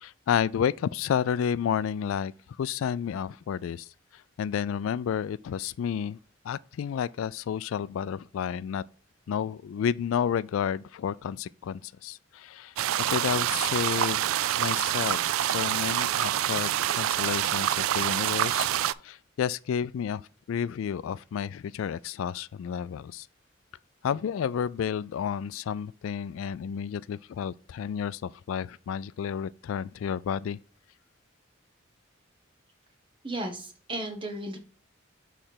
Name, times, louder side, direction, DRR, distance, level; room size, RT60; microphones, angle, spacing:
voice 1, 0.0-2.3 2.6-6.2 6.4-8.8 9.3-12.7 13.1-14.3 14.6-18.7 19.0-20.2 20.5-23.3 24.0-30.6, left 8 dB, 80° left, 0.3 m, -31 dB
sound 1, 12.8-18.9, right 12 dB, 85° right, 0.3 m, -26 dB
voice 2, 33.2-34.6, right 1 dB, 25° right, 1.1 m, -34 dB
6.5 x 3.3 x 5.7 m
head